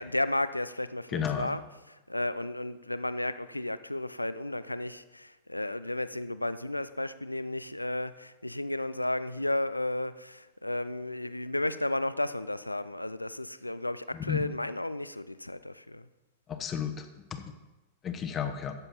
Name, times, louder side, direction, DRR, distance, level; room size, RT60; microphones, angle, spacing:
voice 1, 0.0-1.6 1.9-16.0, left 1 dB, 90° left, 14 dB, 0.4 m, -33 dB
voice 2, 1.1-1.5 14.1-14.5 16.5-17.1 17.3-17.4 18.0-18.7, left 8 dB, 25° left, 7 dB, 1.1 m, -32 dB
14.5 x 7.0 x 4.2 m, 1.1 s
figure-of-eight pair, 95°, 0 cm